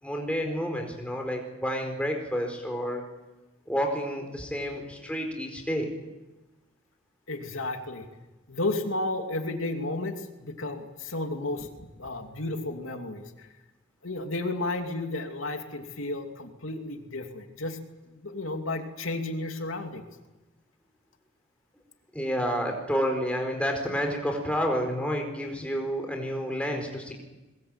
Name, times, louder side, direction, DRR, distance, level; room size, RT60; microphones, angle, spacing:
voice 1, 0.0-3.0 3.7-5.9 22.1-27.1, equal, 5° left, 3 dB, 4.4 m, -30 dB
voice 2, 7.3-8.1 8.5-13.5 14.0-17.8 18.1-20.1, left 2 dB, 85° left, 4 dB, 2.8 m, -33 dB
22.0 x 21.5 x 8.9 m, 1.1 s
head